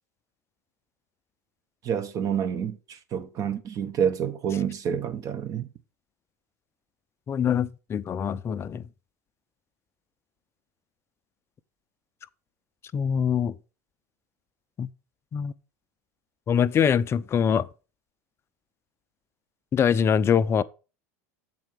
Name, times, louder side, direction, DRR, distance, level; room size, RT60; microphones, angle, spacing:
voice 1, 1.8-5.7, right 8 dB, 40° right, 1.1 m, -28 dB
voice 2, 7.3-8.8 12.9-13.5 14.8-14.9 15.3-15.5 16.5-17.7 19.7-20.6, left 7 dB, 30° left, 0.5 m, -23 dB
7.6 x 4.5 x 5.6 m
hypercardioid pair, 95°, 9 cm